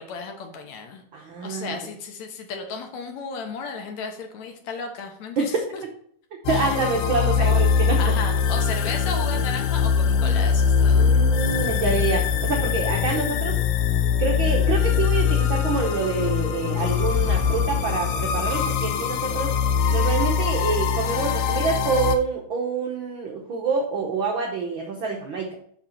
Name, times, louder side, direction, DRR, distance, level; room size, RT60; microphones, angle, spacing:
voice 1, 0.0-1.0 1.4-5.8 6.5-6.7 7.2-7.5 8.0-11.1, left 4 dB, 70° left, 4 dB, 2.1 m, -34 dB
voice 2, 1.1-1.8 5.4-5.6 6.5-8.0 10.9-13.6 14.2-19.6 19.9-25.5, right 4 dB, 85° right, 1 dB, 1.1 m, -26 dB
sound 1, 6.5-22.2, left 6 dB, 90° left, 2.3 m, -22 dB
6.6 x 5.9 x 4.3 m, 0.65 s
omnidirectional pair, 3.6 m